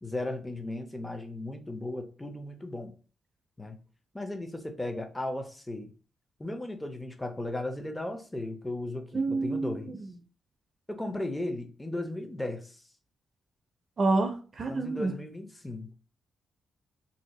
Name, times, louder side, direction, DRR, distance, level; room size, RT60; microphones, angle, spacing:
voice 1, 0.0-2.9 3.6-3.8 4.1-5.9 6.4-9.9 10.9-12.8 14.7-15.9, left 1 dB, 10° left, 0.6 m, -36 dB
voice 2, 9.1-10.0 14.0-15.1, right 3 dB, 45° right, 0.4 m, -28 dB
2.7 x 2.2 x 4.0 m
cardioid pair, 110°, 0 cm